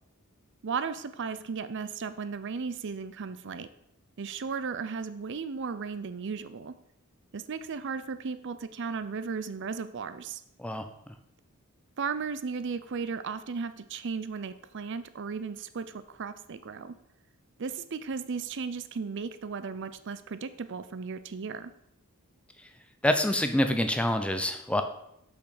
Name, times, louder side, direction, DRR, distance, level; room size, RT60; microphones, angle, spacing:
voice 1, 0.6-3.7 4.2-6.7 7.3-10.4 12.0-16.9 17.6-21.7, right 5 dB, 55° right, 12 dB, 0.5 m, -35 dB
voice 2, 23.0-24.8, left 1 dB, 5° left, 8 dB, 0.6 m, -26 dB
6.2 x 6.0 x 6.5 m, 0.77 s
head